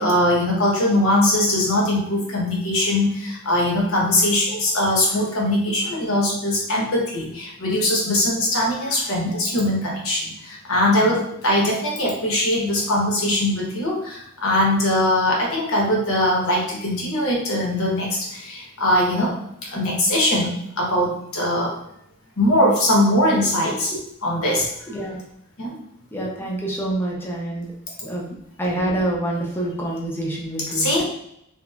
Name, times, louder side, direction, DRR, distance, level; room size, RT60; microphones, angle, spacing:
voice 1, 0.0-19.4 19.6-21.7 22.4-23.9 24.2-24.7 25.6-25.8 28.0-28.2 30.7-31.0, left 1 dB, 65° left, -3 dB, 0.9 m, -21 dB
voice 2, 24.9-25.2 26.1-27.7 28.1-31.0, right 1 dB, 10° left, -3 dB, 0.5 m, -27 dB
2.9 x 2.5 x 2.3 m, 0.74 s
head